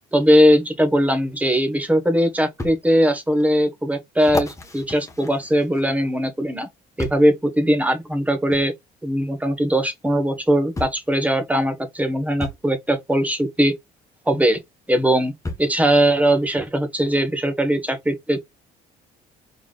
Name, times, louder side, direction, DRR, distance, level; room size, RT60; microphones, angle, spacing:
voice 1, 0.1-6.7 7.0-8.7 9.0-13.7 14.3-14.6 14.9-15.3 15.6-18.4, equal, 10° right, 1.4 m, -20 dB
sound 1, 2.6-2.8 3.4-3.5 4.2-6.1 7.0-7.3 8.5-8.7 9.9-10.0 10.8-11.1 12.4-12.6 14.3-14.4 15.4-15.8 16.6-16.7, left 2 dB, 20° left, 1.3 m, -32 dB
4.6 x 4.0 x 2.4 m
cardioid pair, 110°, 17 cm